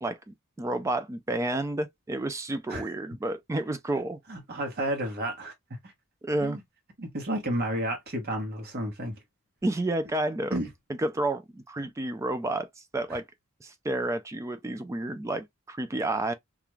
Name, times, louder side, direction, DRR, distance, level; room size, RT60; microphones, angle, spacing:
voice 1, 0.0-4.2 6.2-6.6 9.6-10.6 11.0-13.2 13.6-16.3, right 2 dB, 15° right, 0.3 m, -30 dB
voice 2, 4.3-5.5 5.8-5.9 6.4-6.6 7.0-9.1 10.5-10.7 13.1-13.2, right 1 dB, 50° right, 1.0 m, -31 dB
2.4 x 2.2 x 3.0 m
head